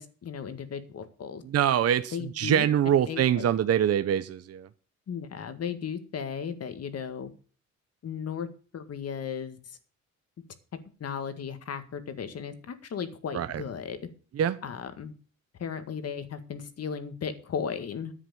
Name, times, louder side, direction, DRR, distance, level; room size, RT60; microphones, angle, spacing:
voice 1, 0.0-1.4 2.1-3.5 5.1-7.3 8.0-8.5 8.7-9.8 11.0-14.0 14.6-15.1 15.6-18.1, left 7 dB, 55° left, 10 dB, 1.9 m, -36 dB
voice 2, 1.5-4.7 13.3-13.5 14.4-14.6, right 10 dB, 55° right, 11 dB, 0.8 m, -24 dB
10.5 x 7.6 x 7.0 m, 0.38 s
cardioid pair, 90°, 30 cm